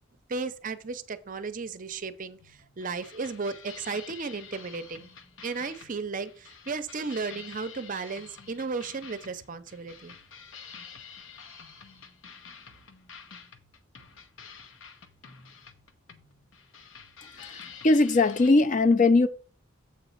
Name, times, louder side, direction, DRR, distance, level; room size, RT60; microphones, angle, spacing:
voice 1, 0.3-5.1 5.4-10.1, right 4 dB, 40° right, 0.5 m, -35 dB
sound 1, 2.4-18.5, left 6 dB, 75° left, 0.9 m, -48 dB
voice 2, 17.3-19.3, left 3 dB, 40° left, 0.5 m, -21 dB
7.7 x 4.0 x 5.5 m
head